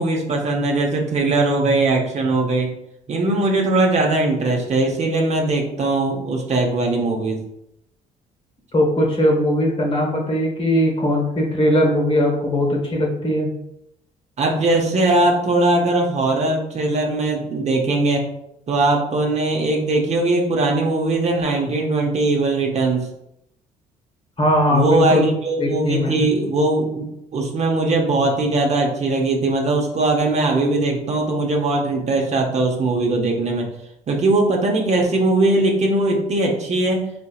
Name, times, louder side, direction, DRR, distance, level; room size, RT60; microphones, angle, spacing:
voice 1, 0.0-2.7 3.1-7.4 14.4-18.2 18.7-23.1 24.7-33.7 34.1-37.0, right 2 dB, 45° right, 1 dB, 0.8 m, -20 dB
voice 2, 8.7-13.5 24.4-25.2 25.6-26.3, left 1 dB, 35° left, 0 dB, 1.3 m, -19 dB
4.2 x 2.7 x 2.4 m, 0.81 s
supercardioid pair, 65°, 17 cm